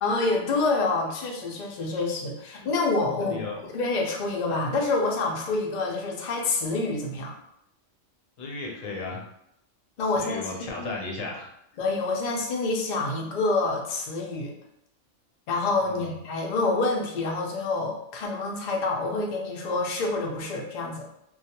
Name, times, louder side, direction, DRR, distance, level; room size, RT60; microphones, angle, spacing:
voice 1, 0.0-7.3 10.0-10.4 10.8-10.9 11.8-14.5 15.5-21.1, left 3 dB, 65° left, 0 dB, 0.4 m, -27 dB
voice 2, 3.2-3.6 8.4-9.2 10.2-11.5 15.8-16.0, left 3 dB, 90° left, 0 dB, 1.0 m, -35 dB
2.3 x 2.2 x 2.8 m, 0.76 s
omnidirectional pair, 1.3 m